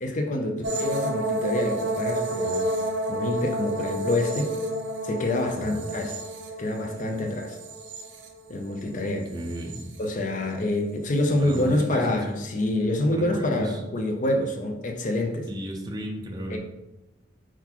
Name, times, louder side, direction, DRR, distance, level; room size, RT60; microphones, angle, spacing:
voice 1, 0.0-2.7 3.1-4.5 5.0-6.2 6.6-7.6 8.5-9.3 10.0-15.5 16.5-16.6, left 1 dB, 40° left, 3 dB, 0.5 m, -27 dB
sound 1, 0.6-8.8 9.2-10.0 11.3-11.6, right 1 dB, 75° right, 0.6 m, -30 dB
voice 2, 9.0-10.0 11.4-12.4 13.1-13.8 15.4-16.6, equal, 20° right, 1 dB, 0.5 m, -35 dB
4.5 x 3.9 x 2.9 m, 1.0 s
head